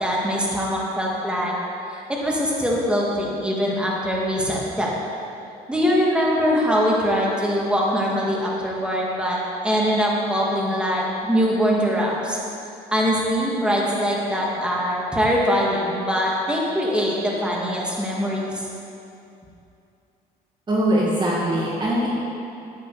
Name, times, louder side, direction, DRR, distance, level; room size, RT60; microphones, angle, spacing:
voice 1, 0.0-1.5 2.1-4.9 5.7-12.4 12.9-18.6, equal, 5° right, -4 dB, 2.5 m, -22 dB
voice 2, 20.7-22.1, right 1 dB, 25° right, -5 dB, 2.0 m, -21 dB
13.0 x 9.7 x 5.1 m, 2.7 s
cardioid pair, 110°, 17 cm